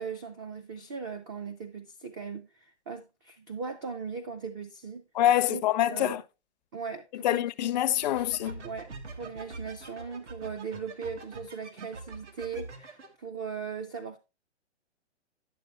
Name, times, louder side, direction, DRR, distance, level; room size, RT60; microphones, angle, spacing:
voice 1, 0.0-5.1 5.5-5.6 5.9-6.2 6.7-7.5 8.6-14.2, right 5 dB, 20° right, 0.4 m, -38 dB
voice 2, 5.2-6.2 7.2-8.6, left 12 dB, 40° left, 0.5 m, -25 dB
sound 1, 8.0-13.1, right 3 dB, 90° right, 1.5 m, -44 dB
10.0 x 6.7 x 3.2 m
hypercardioid pair, 140°, 34 cm